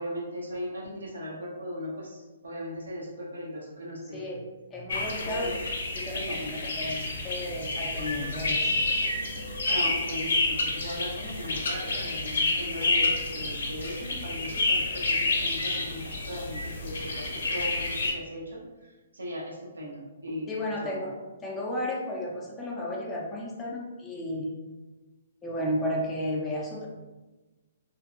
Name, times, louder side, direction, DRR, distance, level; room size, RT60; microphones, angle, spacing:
voice 1, 0.0-4.3 5.4-5.6 6.1-6.5 9.7-20.5 20.8-21.1, equal, 90° right, -3 dB, 0.7 m, -38 dB
voice 2, 4.1-4.4 4.7-5.6 5.9-8.8 20.5-21.2 21.4-24.5 25.4-26.9, left 1 dB, 15° left, -3 dB, 0.4 m, -33 dB
sound 1, 4.9-18.1, left 2 dB, 75° left, 0.5 m, -29 dB
2.6 x 2.1 x 2.4 m, 1.2 s
hypercardioid pair, 135°, 0 cm